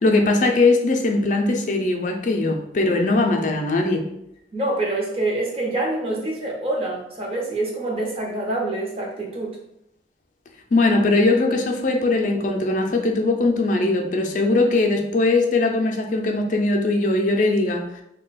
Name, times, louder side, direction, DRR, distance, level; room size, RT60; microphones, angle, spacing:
voice 1, 0.0-4.0 10.7-17.9, left 2 dB, 45° left, 3 dB, 0.4 m, -20 dB
voice 2, 4.5-9.6, right 2 dB, 35° right, -1 dB, 0.7 m, -26 dB
2.8 x 2.2 x 3.9 m, 0.80 s
head